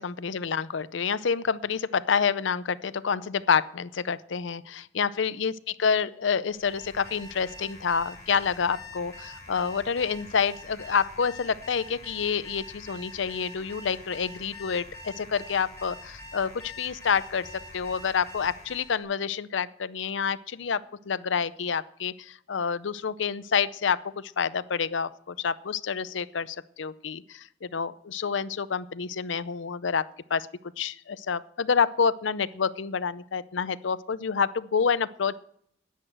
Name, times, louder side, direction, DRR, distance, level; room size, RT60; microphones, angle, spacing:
voice 1, 0.0-17.5 17.7-20.8 21.1-30.0 30.3-30.5 30.8-35.4, left 6 dB, 75° left, 17 dB, 0.6 m, -28 dB
Alarm, 6.5-19.0, left 1 dB, 15° left, 7.2 m, -45 dB
10.5 x 10.0 x 7.7 m, 0.69 s
head